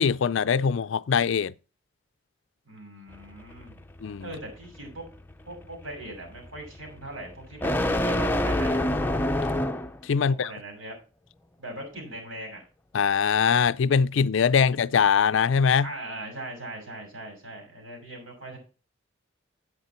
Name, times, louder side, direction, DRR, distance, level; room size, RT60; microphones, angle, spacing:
voice 1, 0.0-1.5 4.0-4.3 10.0-10.5 12.9-15.9, left 6 dB, 65° left, 0.4 m, -22 dB
voice 2, 2.7-3.8 4.2-5.0 5.5-8.7 10.3-11.0 11.6-12.6 15.8-18.6, right 1 dB, 75° right, 6.3 m, -40 dB
sound 1, 3.1-10.1, left 1 dB, 10° left, 0.6 m, -28 dB
9.6 x 8.3 x 4.3 m
head